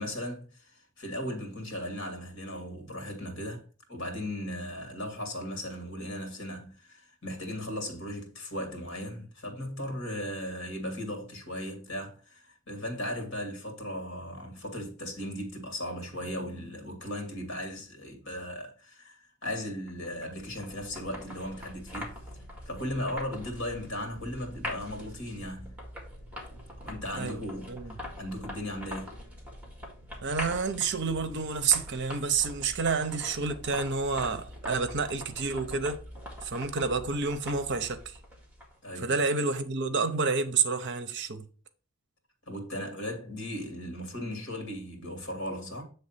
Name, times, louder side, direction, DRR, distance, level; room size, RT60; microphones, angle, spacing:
voice 1, 0.0-3.6 3.9-22.2 22.7-25.7 26.8-27.7 28.2-29.1 38.8-39.1 42.5-45.8, left 1 dB, 60° left, 2.1 m, -37 dB
sound 1, 19.9-38.9, left 1 dB, 5° right, 2.0 m, -43 dB
voice 2, 30.2-36.0 36.4-38.2 39.0-41.4, right 4 dB, 55° right, 0.7 m, -29 dB
7.8 x 3.4 x 5.7 m
head